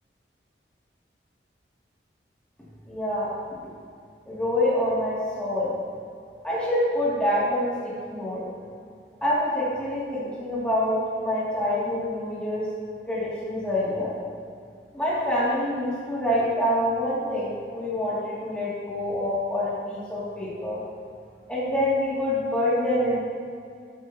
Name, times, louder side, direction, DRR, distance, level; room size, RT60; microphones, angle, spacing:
voice 1, 2.9-3.3 4.3-5.7 6.4-8.4 9.2-12.7 13.1-14.1 14.9-20.8 21.5-23.2, left 1 dB, 5° left, -9 dB, 2.2 m, -26 dB
14.0 x 8.9 x 2.8 m, 2.4 s
head